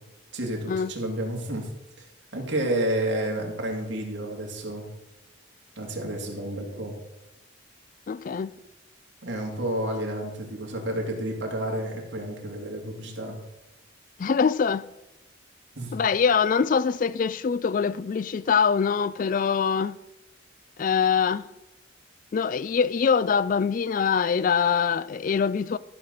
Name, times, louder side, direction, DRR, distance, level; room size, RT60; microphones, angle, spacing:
voice 1, 0.3-1.7 2.0-2.1 2.3-4.8 5.8-6.9 9.2-13.4 15.8-15.9, right 1 dB, 65° right, 2.6 m, -30 dB
voice 2, 8.1-8.5 14.2-14.8 15.9-20.0 20.8-21.5 22.3-25.8, left 6 dB, 45° left, 0.3 m, -23 dB
13.5 x 5.5 x 6.6 m
head